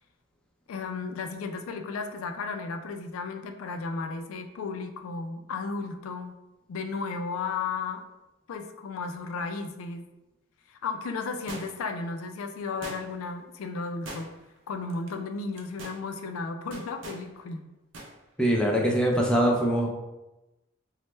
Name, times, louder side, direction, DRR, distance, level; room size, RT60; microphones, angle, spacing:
voice 1, 0.7-6.3 6.7-8.0 8.5-10.0 10.7-14.3 14.7-17.7, left 4 dB, 90° left, 7 dB, 0.3 m, -34 dB
sound 1, 11.5-12.0 12.8-13.3 14.0-14.6 14.9-15.1 15.5-16.0 16.7-17.2 17.9-18.1 18.4-18.5, right 2 dB, 65° right, 0.5 m, -41 dB
voice 2, 18.4-19.9, right 1 dB, 5° left, -2 dB, 0.3 m, -23 dB
3.1 x 2.1 x 3.1 m, 0.99 s
head